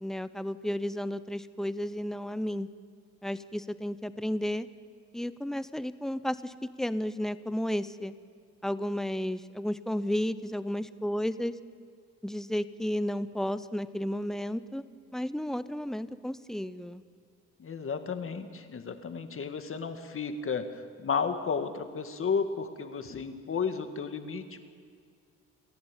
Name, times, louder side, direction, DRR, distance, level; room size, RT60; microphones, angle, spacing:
voice 1, 0.0-2.7 3.2-4.7 5.1-8.1 8.6-11.5 12.2-14.8 15.1-17.0, left 1 dB, ahead, 14 dB, 0.8 m, -32 dB
voice 2, 17.6-24.6, left 5 dB, 45° left, 8 dB, 1.9 m, -33 dB
29.5 x 11.0 x 9.1 m, 2.2 s
cardioid pair, 90°, 30 cm